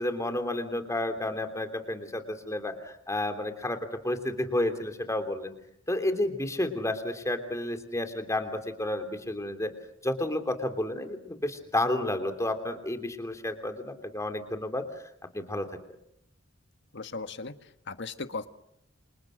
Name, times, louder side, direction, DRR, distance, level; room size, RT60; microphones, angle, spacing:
voice 1, 0.0-5.5 5.9-9.7 10.0-14.9 15.3-15.7, left 1 dB, 15° left, 8 dB, 3.1 m, -31 dB
voice 2, 16.9-17.5 17.9-18.5, left 3 dB, 60° left, 9 dB, 1.6 m, -36 dB
29.0 x 27.5 x 6.5 m, 0.74 s
head